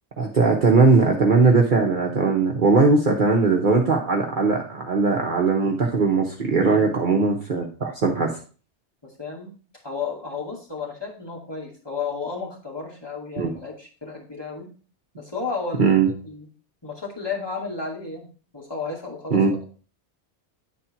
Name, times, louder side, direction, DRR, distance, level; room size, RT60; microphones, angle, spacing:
voice 1, 0.2-8.3 13.4-13.5 15.8-16.1 19.3-19.5, right 4 dB, 45° right, 0 dB, 1.1 m, -19 dB
voice 2, 9.0-9.5 9.8-14.7 15.1-16.0 16.2-16.5 16.8-18.3 18.5-19.6, left 4 dB, 20° left, -3 dB, 2.5 m, -33 dB
10.5 x 4.3 x 4.4 m, 0.38 s
omnidirectional pair, 1.2 m